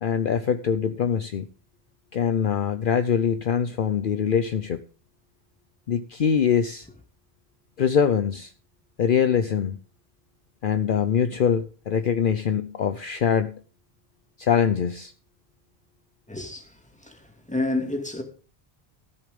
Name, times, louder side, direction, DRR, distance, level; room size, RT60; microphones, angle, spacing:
voice 1, 0.0-1.5 2.1-4.8 5.9-6.9 7.8-8.5 9.0-9.8 10.6-13.6 14.4-15.1, left 7 dB, 60° left, 0.8 m, -23 dB
voice 2, 16.3-18.2, left 2 dB, 5° left, 2.2 m, -30 dB
13.5 x 7.0 x 5.2 m
omnidirectional pair, 1.0 m